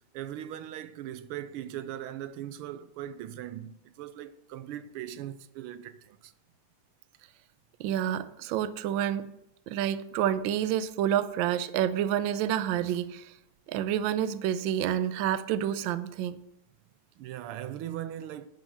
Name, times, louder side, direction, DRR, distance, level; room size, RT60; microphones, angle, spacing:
voice 1, 0.1-6.3 17.2-18.5, right 11 dB, 90° right, 1.5 m, -39 dB
voice 2, 7.8-9.3 9.7-13.3 13.7-16.4, right 10 dB, 75° right, 1.3 m, -28 dB
10.5 x 6.3 x 6.6 m
omnidirectional pair, 2.4 m